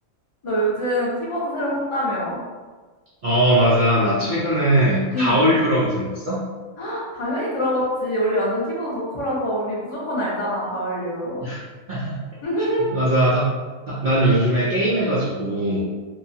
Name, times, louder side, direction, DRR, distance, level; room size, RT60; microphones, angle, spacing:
voice 1, 0.4-2.4 5.1-5.5 6.8-11.5 12.4-12.9, equal, 35° left, -5 dB, 0.5 m, -25 dB
voice 2, 3.2-6.4 11.4-11.6 11.9-12.1 12.9-13.5 13.9-15.8, right 1 dB, 80° right, -8 dB, 0.4 m, -20 dB
2.8 x 2.2 x 2.6 m, 1.4 s
omnidirectional pair, 1.5 m